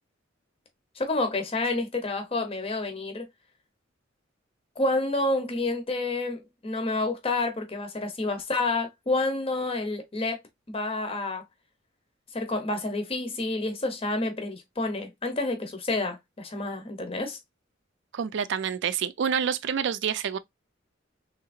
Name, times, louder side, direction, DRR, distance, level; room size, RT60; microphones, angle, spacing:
voice 1, 1.0-3.2 4.8-10.4 10.7-11.4 12.3-17.4, left 2 dB, 30° left, 0.8 m, -29 dB
voice 2, 18.1-20.4, right 7 dB, 65° right, 0.4 m, -28 dB
3.5 x 2.8 x 2.4 m
head